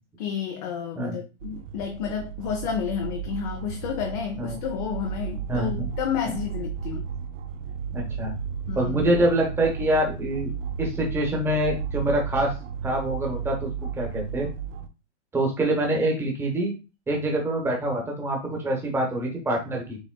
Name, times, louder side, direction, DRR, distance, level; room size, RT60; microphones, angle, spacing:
voice 1, 0.2-7.0 8.7-9.1, left 8 dB, 35° left, 0.6 m, -31 dB
sound 1, 1.4-14.9, right 7 dB, 90° right, 0.7 m, -34 dB
voice 2, 5.5-5.9 6.2-6.3 7.9-8.3 8.7-10.5 10.8-12.5 12.8-14.5 15.3-16.7 17.1-20.0, right 1 dB, 5° right, 1.1 m, -25 dB
6.4 x 3.3 x 2.2 m
hypercardioid pair, 160°, 36 cm